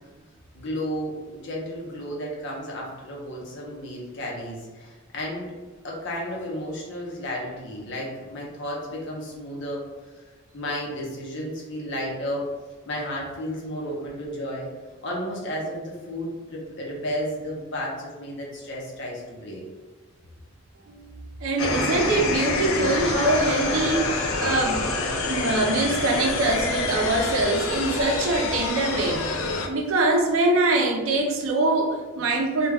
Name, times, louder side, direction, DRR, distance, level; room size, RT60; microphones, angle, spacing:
voice 1, 0.5-5.5 5.8-9.8 10.5-12.6 12.9-14.7 15.0-19.6, equal, 60° left, -3 dB, 0.7 m, -32 dB
voice 2, 21.4-24.9 25.3-29.3 29.7-32.7, right 2 dB, 75° right, 2 dB, 0.5 m, -23 dB
sound 1, 21.6-29.7, left 3 dB, 85° left, 0.4 m, -27 dB
2.2 x 2.2 x 3.3 m, 1.3 s
head